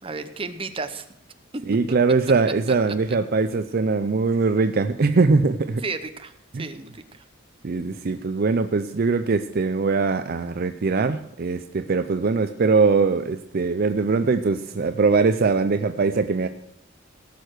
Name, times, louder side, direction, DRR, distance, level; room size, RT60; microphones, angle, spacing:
voice 1, 0.0-1.1 1.5-1.6 2.7-2.8 5.8-6.3 6.6-7.0, right 3 dB, 30° right, 9 dB, 0.8 m, -32 dB
voice 2, 1.7-5.8 6.5-6.7 7.6-16.5, right 4 dB, 50° right, 9 dB, 0.5 m, -21 dB
17.0 x 6.6 x 6.4 m, 0.76 s
head